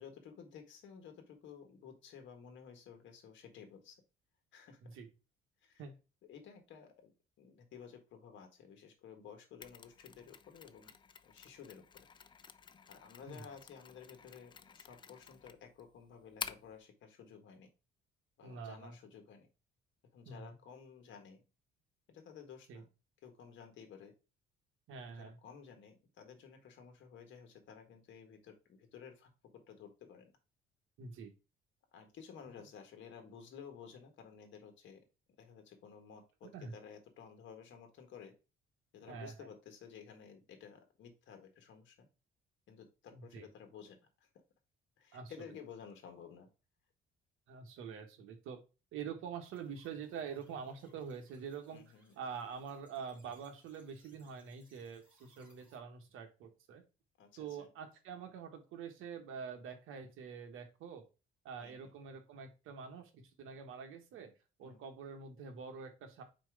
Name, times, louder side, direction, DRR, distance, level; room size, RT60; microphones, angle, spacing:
voice 1, 0.0-4.0 4.5-4.8 5.6-5.8 6.2-7.1 7.4-10.9 11.2-12.1 12.9-17.7 18.4-19.5 20.1-21.4 22.1-22.9 23.2-24.1 25.0-30.3 31.9-35.0 35.4-38.3 38.9-42.1 42.7-44.3 45.0-46.5 51.7-52.2 57.2-57.7 61.6-61.7 64.6-64.8, left 7 dB, 60° left, 5 dB, 1.6 m, -54 dB
Mechanisms, 9.6-16.8, left 6 dB, 20° left, 0.4 m, -50 dB
voice 2, 18.4-19.0 20.2-20.5 22.7-22.8 24.9-25.4 31.0-31.3 36.5-36.7 39.1-39.5 43.1-43.5 45.1-45.5 47.5-48.6 48.9-51.8 52.2-56.8 57.4-61.1 61.4-64.3 64.6-66.2, right 6 dB, 75° right, 5 dB, 1.5 m, -46 dB
sound 1, 49.4-55.8, equal, 5° right, 2.2 m, -71 dB
4.5 x 4.3 x 4.8 m, 0.30 s
cardioid pair, 145°, 21 cm